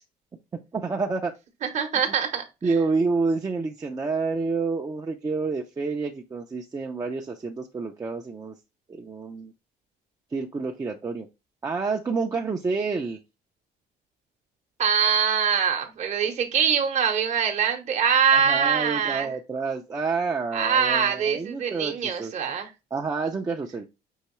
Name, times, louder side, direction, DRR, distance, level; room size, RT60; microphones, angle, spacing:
voice 1, 0.7-1.3 2.6-8.5 8.9-9.5 10.3-11.3 11.6-13.2 18.3-22.3 22.9-23.8, right 4 dB, 20° right, 0 dB, 0.5 m, -28 dB
voice 2, 1.6-2.4 14.8-19.3 20.5-22.7, right 7 dB, 45° right, 4 dB, 0.9 m, -23 dB
5.6 x 3.0 x 3.0 m, 0.26 s
cardioid pair, 110°, 17 cm